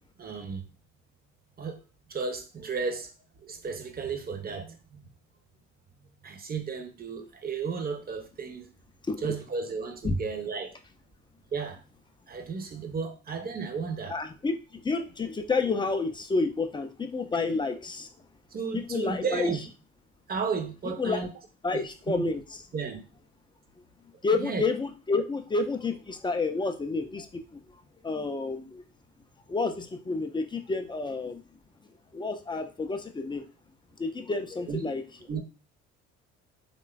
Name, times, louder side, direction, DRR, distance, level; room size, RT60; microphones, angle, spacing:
voice 1, 0.2-0.6 1.6-1.8 2.1-3.1 3.4-5.1 6.2-8.7 9.2-10.7 11.5-11.8 12.3-14.2 18.5-19.6 20.3-21.3 21.7-22.2 22.7-23.0 24.4-24.7 34.7-34.9 35.3-35.4, right 5 dB, 25° right, 6 dB, 0.6 m, -33 dB
voice 2, 14.1-14.6 14.8-18.1 18.9-19.5 21.0-21.2 21.6-22.4 24.2-27.3 28.0-28.8 29.5-31.4 32.1-33.4 34.0-35.0, left 3 dB, 15° left, 6 dB, 0.3 m, -29 dB
3.1 x 2.2 x 2.3 m, 0.33 s
hypercardioid pair, 65°, 34 cm